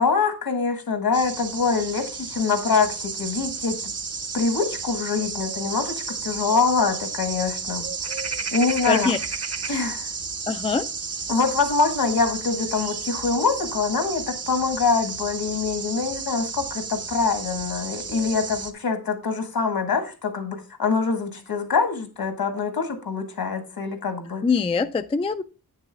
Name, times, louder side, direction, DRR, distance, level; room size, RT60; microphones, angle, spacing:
voice 1, 0.0-3.9 4.3-7.9 8.5-9.1 9.7-10.1 11.3-24.4, left 4 dB, 70° left, 7 dB, 1.6 m, -24 dB
sound 1, 1.1-18.7, right 5 dB, 40° right, 0.8 m, -32 dB
voice 2, 8.8-9.2 10.5-10.9 24.4-25.4, left 5 dB, 15° left, 11 dB, 0.3 m, -23 dB
9.3 x 6.8 x 3.4 m, 0.33 s
wide cardioid pair, 125°, 38 cm